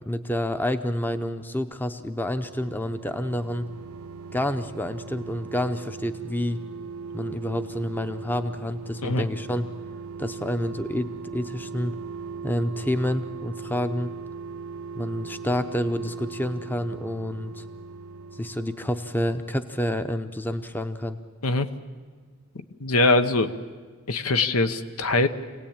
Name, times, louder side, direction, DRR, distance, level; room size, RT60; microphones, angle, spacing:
voice 1, 0.0-3.7 4.3-6.6 7.1-9.6 10.2-12.0 12.4-14.1 15.0-17.7 18.3-21.2, left 1 dB, 10° left, 9 dB, 0.6 m, -28 dB
sound 1, 1.9-20.2 20.5-20.6, right 5 dB, 80° right, 0.7 m, -39 dB
voice 2, 22.8-23.5 24.1-25.3, left 2 dB, 85° left, 10 dB, 1.0 m, -22 dB
26.0 x 18.0 x 8.8 m, 1.5 s
head